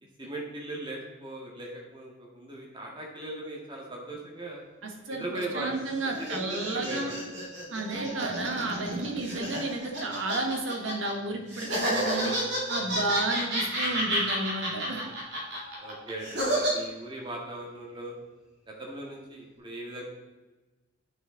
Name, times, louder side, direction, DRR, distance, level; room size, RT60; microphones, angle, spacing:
voice 1, 0.2-4.6 5.1-5.7 6.0-7.2 12.9-13.1 14.9-15.0 15.8-18.2 18.7-20.1, right 1 dB, 25° right, -2 dB, 1.8 m, -39 dB
voice 2, 4.8-7.1 7.7-15.0, right 2 dB, 90° right, 3 dB, 1.4 m, -32 dB
Bird, 4.9-5.5 5.8-5.9 6.2-7.4 7.6-9.5 10.3-10.4 11.0-11.1 11.3-11.4 12.1-12.5 13.5-13.6 14.0-14.1 14.3-16.6 16.9-17.2 17.5-18.9 19.3-19.5, equal, 5° right, 2.4 m, -51 dB
sound 1, 5.7-11.1 11.5-16.7, right 1 dB, 60° right, 2.4 m, -31 dB
9.0 x 6.1 x 3.9 m, 1.1 s
head